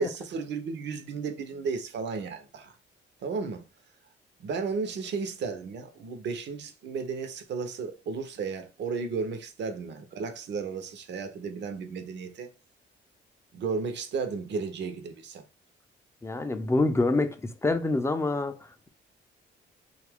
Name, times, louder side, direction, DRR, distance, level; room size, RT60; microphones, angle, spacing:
voice 1, 0.0-2.8 3.2-3.6 4.4-12.5 13.5-15.4, right 5 dB, 65° right, 0.7 m, -34 dB
voice 2, 16.2-18.9, left 2 dB, 15° left, 0.4 m, -27 dB
2.7 x 2.4 x 3.4 m
cardioid pair, 90°, 20 cm